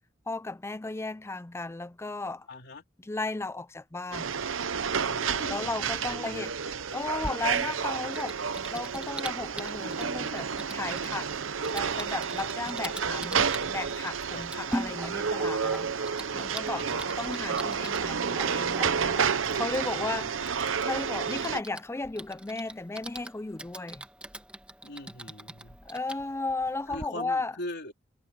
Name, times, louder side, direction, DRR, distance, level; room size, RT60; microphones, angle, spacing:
voice 1, 0.3-2.5 3.0-4.4 5.5-6.5 6.9-8.4 8.7-11.3 11.7-19.2 19.5-24.1 25.8-27.6, left 3 dB, 15° left, 0.4 m, -35 dB
voice 2, 2.5-2.8 5.0-6.4 14.3-14.4 16.7-17.1 19.7-20.3 24.8-25.8 26.9-27.9, left 2 dB, 60° left, 3.6 m, -42 dB
sound 1, 4.1-21.6, right 6 dB, 80° right, 0.8 m, -30 dB
Typing, 7.2-27.0, right 1 dB, 5° right, 1.4 m, -43 dB
head